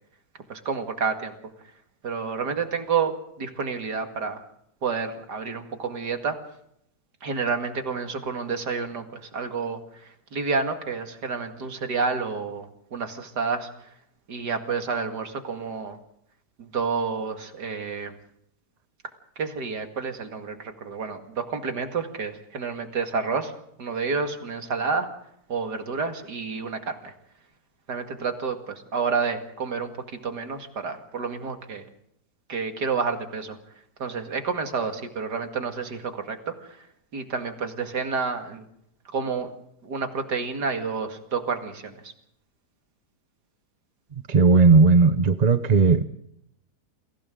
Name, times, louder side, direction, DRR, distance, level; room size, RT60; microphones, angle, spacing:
voice 1, 0.5-1.3 2.0-4.4 4.8-6.4 7.2-13.9 14.3-16.0 16.6-18.1 19.4-23.5 23.8-25.1 25.5-27.1 27.9-31.9 32.5-33.6 34.0-36.9 37.1-38.7 39.1-39.5 39.8-42.1, right 5 dB, 80° right, 6 dB, 2.8 m, -29 dB
voice 2, 44.3-46.0, right 4 dB, 40° right, 11 dB, 0.6 m, -16 dB
30.0 x 22.5 x 3.9 m, 0.74 s
omnidirectional pair, 1.8 m